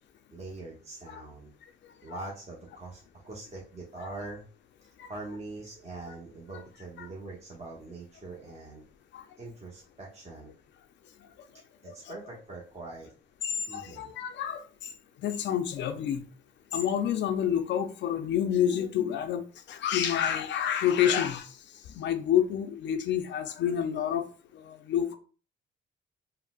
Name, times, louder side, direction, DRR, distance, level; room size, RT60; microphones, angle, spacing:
voice 1, 0.3-1.5 2.0-4.4 5.0-8.8 9.4-10.5 11.8-13.1 13.7-14.1, right 2 dB, 30° right, 0.8 m, -43 dB
voice 2, 13.4-14.6 15.2-16.2 16.7-21.6 21.9-24.2 24.5-25.2, left 9 dB, 65° left, 0.4 m, -28 dB
3.8 x 2.0 x 2.3 m
cardioid pair, 90°, 20 cm